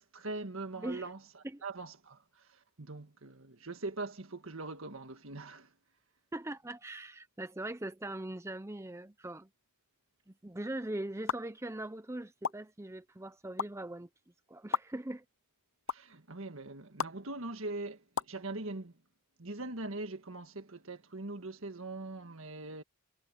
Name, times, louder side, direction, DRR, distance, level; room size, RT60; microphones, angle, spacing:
voice 1, 0.0-5.7 15.9-18.9 19.4-22.8, right 2 dB, 70° right, 1.7 m, -42 dB
voice 2, 0.8-1.1 1.4-1.6 6.3-9.5 10.3-14.1 14.5-15.2, right 1 dB, 15° right, 0.6 m, -41 dB
sound 1, 11.3-11.4 12.4-12.5 13.6-13.7 14.7-14.8 15.9-16.0 17.0-17.1 18.2-18.3, left 6 dB, 65° left, 0.7 m, -31 dB
head